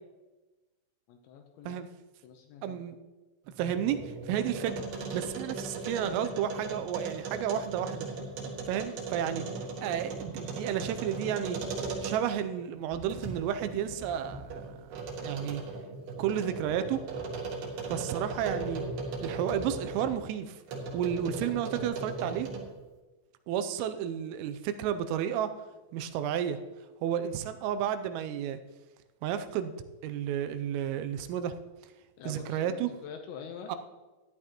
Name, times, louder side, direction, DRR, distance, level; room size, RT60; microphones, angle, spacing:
voice 1, 1.1-1.8 2.2-2.8 32.2-33.7, left 7 dB, 75° left, 4 dB, 2.8 m, -45 dB
voice 2, 2.6-3.0 3.6-4.8 5.1-8.1 8.7-9.5 9.8-11.6 12.0-14.9 15.2-15.6 16.2-17.0 17.9-18.8 19.2-20.6 20.9-22.5 23.5-25.5 25.9-26.6 27.0-28.6 29.2-29.7 30.0-31.5 32.3-32.9 33.7-33.8, right 9 dB, 85° right, 9 dB, 3.3 m, -32 dB
sound 1, 3.5-12.4 12.9-20.2 20.7-22.8, right 3 dB, 60° right, 3.1 m, -38 dB
14.5 x 11.0 x 3.0 m, 1.2 s
omnidirectional pair, 5.9 m